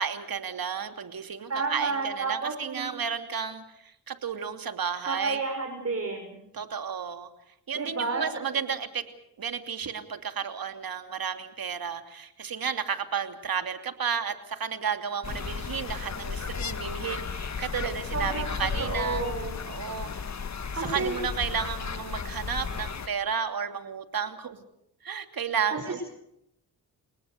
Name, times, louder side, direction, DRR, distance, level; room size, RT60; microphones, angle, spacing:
voice 1, 0.0-5.4 6.5-7.3 7.7-9.0 9.4-19.2 19.7-20.1 20.8-24.6 25.0-26.0, right 7 dB, 60° right, 8 dB, 2.9 m, -32 dB
voice 2, 1.5-2.9 5.0-6.4 7.7-8.2 18.1-19.6 20.7-21.2 25.7-26.0, right 3 dB, 35° right, 3 dB, 6.2 m, -31 dB
sound 1, 15.2-23.1, left 5 dB, 40° left, 1.8 m, -34 dB
30.0 x 18.5 x 6.7 m, 0.76 s
supercardioid pair, 50°, 41 cm